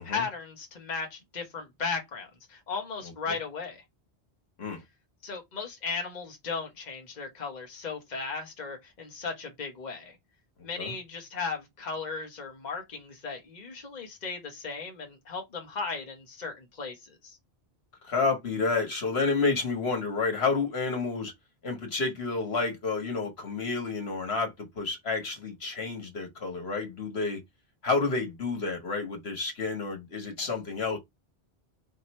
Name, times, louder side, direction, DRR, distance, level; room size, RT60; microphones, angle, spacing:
voice 1, 0.0-3.8 5.2-10.2 10.6-17.4, left 4 dB, 45° left, 1.2 m, -36 dB
voice 2, 18.0-21.3 21.6-27.4 27.8-31.0, left 4 dB, 70° left, 1.7 m, -30 dB
5.0 x 2.8 x 3.1 m
omnidirectional pair, 1.1 m